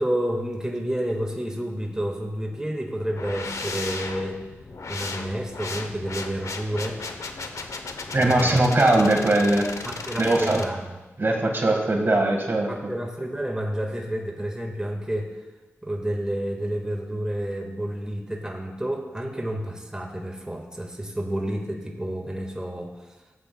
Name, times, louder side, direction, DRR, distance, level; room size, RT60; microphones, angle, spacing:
voice 1, 0.0-4.4 4.9-7.0 8.0-8.7 9.8-10.8 12.7-15.3 15.8-22.9, right 1 dB, 15° right, 1 dB, 1.6 m, -30 dB
sound 1, 3.2-10.7, left 3 dB, 75° left, 0.8 m, -35 dB
voice 2, 8.1-9.6 10.2-10.6 11.2-12.7, right 2 dB, 45° right, 1 dB, 1.6 m, -20 dB
14.5 x 8.1 x 2.2 m, 1.1 s
cardioid pair, 45°, 5 cm